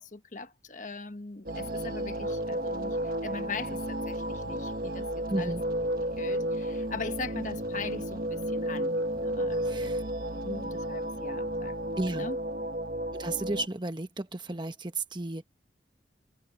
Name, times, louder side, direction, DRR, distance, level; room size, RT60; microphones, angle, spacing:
voice 1, 0.0-5.1 5.4-5.6 6.2-9.9 10.3-11.7 12.1-12.4, left 4 dB, 45° left, 1.2 m, -40 dB
sound 1, 1.5-13.7, right 1 dB, 50° right, 1.4 m, -32 dB
voice 2, 5.3-5.6 9.6-10.0 12.0-12.3 13.1-15.5, right 2 dB, 25° right, 1.2 m, -33 dB
head